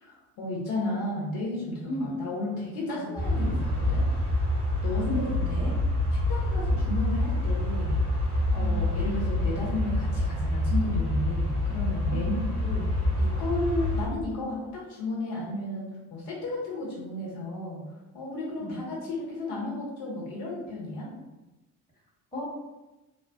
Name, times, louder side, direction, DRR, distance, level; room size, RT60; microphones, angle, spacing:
voice 1, 0.0-4.0 4.8-5.3 6.3-8.1 8.5-12.4 12.6-12.9 13.2-17.8 18.1-21.1, left 2 dB, 55° left, -4 dB, 1.1 m, -33 dB
voice 2, 1.8-2.2 2.9-3.1 4.9-5.7 8.6-8.9 12.1-12.4 18.6-18.8 22.3-22.4, left 1 dB, 15° left, -7 dB, 1.3 m, -35 dB
sound 1, 3.2-14.1, left 1 dB, 75° right, 1.2 m, -27 dB
3.1 x 2.2 x 2.6 m, 1.0 s
figure-of-eight pair, 45°, 46 cm